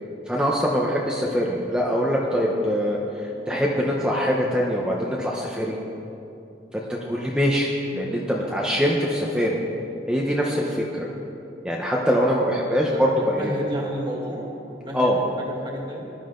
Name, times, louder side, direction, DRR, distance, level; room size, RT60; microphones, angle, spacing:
voice 1, 0.3-5.8 6.7-9.6 10.1-11.1 11.6-13.5 14.9-15.2, equal, 5° right, -3 dB, 1.0 m, -23 dB
voice 2, 7.1-7.5 12.8-16.1, equal, 25° right, -2 dB, 2.1 m, -32 dB
19.5 x 12.0 x 3.9 m, 2.8 s
head